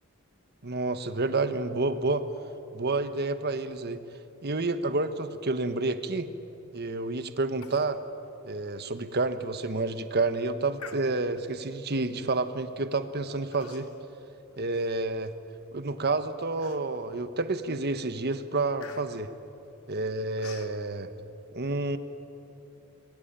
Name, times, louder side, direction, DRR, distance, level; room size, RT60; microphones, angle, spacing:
voice 1, 0.6-2.3 2.7-4.0 4.4-6.3 6.7-8.0 8.4-13.9 14.6-15.3 15.7-19.3 19.9-21.1 21.5-22.0, right 3 dB, 50° right, 10 dB, 1.3 m, -29 dB
Human voice, 7.6-7.9 8.3-8.4 8.9-9.0 9.5-9.8 10.8-11.5 12.3-12.5 13.5-14.1 14.5-15.5 16.0-16.1 16.6-17.2 17.6-17.9 18.1-20.8, left 5 dB, 80° left, 1.9 m, -49 dB
27.0 x 22.0 x 9.0 m, 2.9 s
head